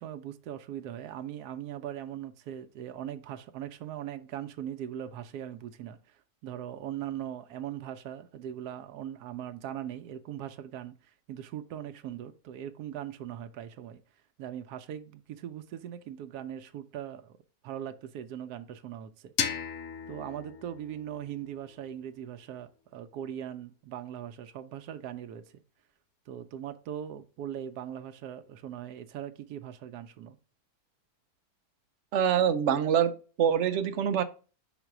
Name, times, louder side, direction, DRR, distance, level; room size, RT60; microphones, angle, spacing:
voice 1, 0.0-14.0 14.4-17.4 17.6-19.3 20.1-25.6 26.3-30.4, right 10 dB, 85° right, 1.1 m, -40 dB
sound 1, 19.4-22.2, left 7 dB, 65° left, 1.0 m, -36 dB
voice 2, 32.1-34.2, right 8 dB, 60° right, 0.8 m, -25 dB
5.1 x 4.0 x 5.8 m
omnidirectional pair, 1.6 m